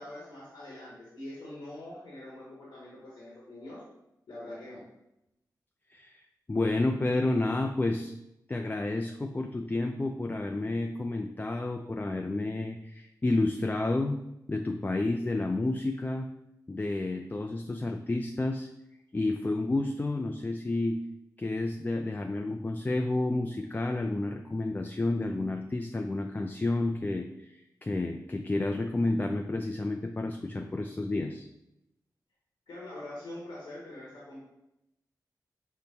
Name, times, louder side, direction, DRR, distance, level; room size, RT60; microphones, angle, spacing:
voice 1, 0.0-3.8 4.3-4.8 32.7-34.4, left 1 dB, 85° left, -6 dB, 1.2 m, -44 dB
voice 2, 5.9-6.2 6.5-8.1 8.5-16.3 16.7-18.7 19.1-21.0 21.4-31.5, left 2 dB, 25° left, 3 dB, 0.3 m, -30 dB
5.5 x 2.1 x 4.0 m, 0.87 s
cardioid pair, 50°, 7 cm